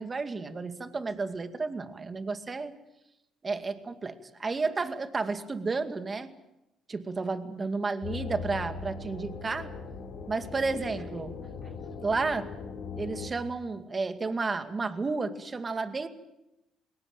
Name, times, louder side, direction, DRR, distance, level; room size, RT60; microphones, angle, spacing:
voice 1, 0.0-2.7 3.4-6.3 6.9-9.7 10.3-11.3 12.0-12.5 13.0-16.1, right 4 dB, 35° right, 9 dB, 2.3 m, -32 dB
sound 1, 8.0-13.3, left 5 dB, 70° left, 3.7 m, -39 dB
22.5 x 18.5 x 9.0 m, 0.91 s
supercardioid pair, 60°, 0 cm